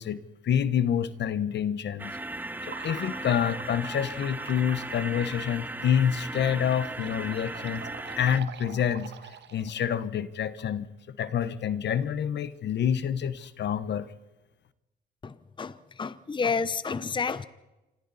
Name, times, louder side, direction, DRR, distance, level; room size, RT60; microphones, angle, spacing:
voice 1, 0.0-2.1 2.6-7.8 8.2-9.1 9.5-14.1, left 9 dB, 60° left, 14 dB, 1.1 m, -28 dB
sound 1, 2.0-8.4, right 2 dB, 10° right, 0.9 m, -37 dB
sound 2, 2.6-9.9, right 8 dB, 60° right, 1.6 m, -46 dB
voice 2, 15.2-17.5, left 5 dB, 25° left, 15 dB, 0.8 m, -30 dB
27.5 x 25.0 x 4.2 m, 1.0 s
cardioid pair, 90°, 20 cm